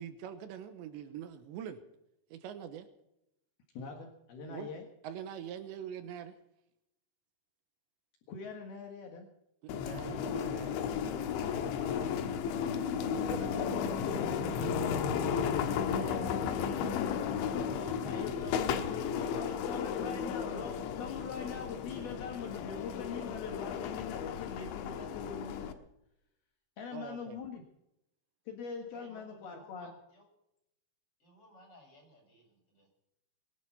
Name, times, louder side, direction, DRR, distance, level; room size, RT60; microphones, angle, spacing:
voice 1, 0.0-1.8 2.3-2.9 4.5-4.7 5.0-6.3 9.6-10.8 13.0-15.1 17.8-18.1 26.9-27.4, right 9 dB, 80° right, 10 dB, 3.2 m, -44 dB
voice 2, 3.7-4.9 8.3-9.3 11.4-12.5 15.6-16.3 18.0-19.1 19.3-25.8 26.8-27.6 28.5-29.9, left 5 dB, 65° left, 2 dB, 3.2 m, -43 dB
sound 1, 9.7-25.7, left 7 dB, 85° left, 3.5 m, -34 dB
voice 3, 18.0-20.8 28.9-30.2 31.2-32.9, left 1 dB, 30° left, -1 dB, 8.0 m, -57 dB
21.5 x 11.0 x 5.8 m, 0.85 s
omnidirectional pair, 5.3 m